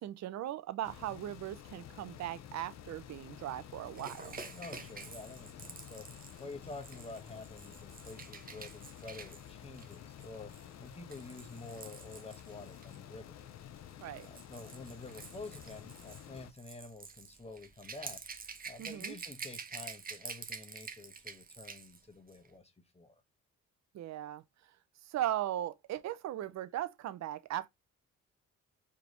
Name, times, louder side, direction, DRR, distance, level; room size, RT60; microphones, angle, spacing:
voice 1, 0.0-4.4 14.0-14.3 18.8-19.1 23.9-24.4 25.1-27.7, right 12 dB, 60° right, 0.6 m, -38 dB
sound 1, 0.8-16.5, left 10 dB, 60° left, 0.7 m, -51 dB
Rattle / Rattle (instrument), 3.9-13.0 13.9-22.0 22.3-22.5, right 5 dB, 30° right, 0.9 m, -48 dB
voice 2, 4.5-13.4 14.2-18.2 18.7-23.2, left 3 dB, 20° left, 1.4 m, -49 dB
4.8 x 3.5 x 3.0 m
cardioid pair, 90°, 30 cm